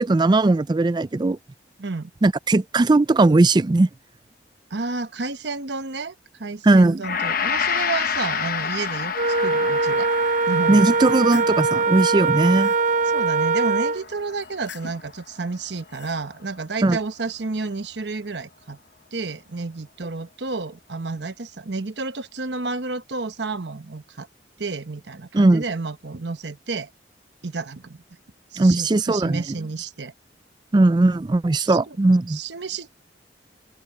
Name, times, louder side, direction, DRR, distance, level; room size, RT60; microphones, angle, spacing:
voice 1, 0.0-1.4 2.2-3.9 6.6-7.0 10.7-12.7 16.8-17.0 25.3-25.6 28.6-29.4 30.7-32.4, right 2 dB, 25° right, 0.4 m, -18 dB
voice 2, 1.8-2.1 4.7-10.1 10.5-10.8 13.1-18.8 19.1-24.3 24.6-26.9 27.4-28.0 28.5-30.1 31.6-32.0 32.3-32.9, right 3 dB, 75° right, 1.1 m, -31 dB
Gong, 7.0-15.5 15.8-16.0, left 7 dB, 55° left, 0.9 m, -30 dB
Wind instrument woodwind instrument, 9.1-14.0, right 3 dB, 45° right, 0.8 m, -21 dB
sound 1, 10.9-11.6 12.2-12.8 14.4-15.1 15.7-16.2, left 5 dB, 90° left, 6.3 m, -43 dB
open air
head